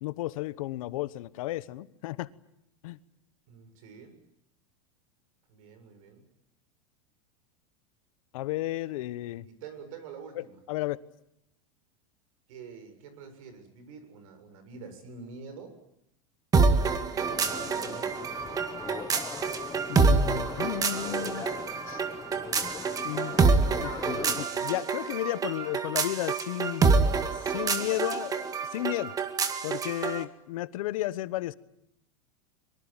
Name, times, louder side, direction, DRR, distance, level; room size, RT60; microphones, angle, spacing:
voice 1, 0.0-2.3 2.8-3.0 8.3-9.5 10.4-11.0 19.9-21.5 21.9-22.0 23.0-23.3 23.7-26.9 27.4-29.1 29.6-31.5, left 16 dB, 75° left, 1.1 m, -33 dB
voice 2, 3.5-4.2 5.5-6.2 9.4-10.6 12.5-15.8 16.7-18.2, right 5 dB, 75° right, 7.5 m, -47 dB
sound 1, 16.5-30.2, right 4 dB, 20° right, 1.9 m, -27 dB
sound 2, 17.2-24.4, left 6 dB, 20° left, 1.2 m, -41 dB
23.5 x 23.5 x 9.0 m
supercardioid pair, 140°, 18 cm